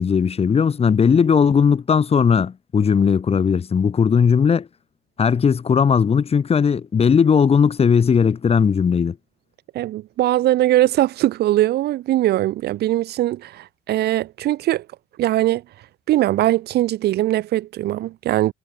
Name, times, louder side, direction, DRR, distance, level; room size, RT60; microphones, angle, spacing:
voice 1, 0.0-4.7 5.2-9.2, left 6 dB, 35° left, 5.4 m, -17 dB
voice 2, 9.7-14.8 15.2-15.6 16.1-18.5, right 14 dB, 70° right, 4.7 m, -20 dB
cardioid pair, 110°, 17 cm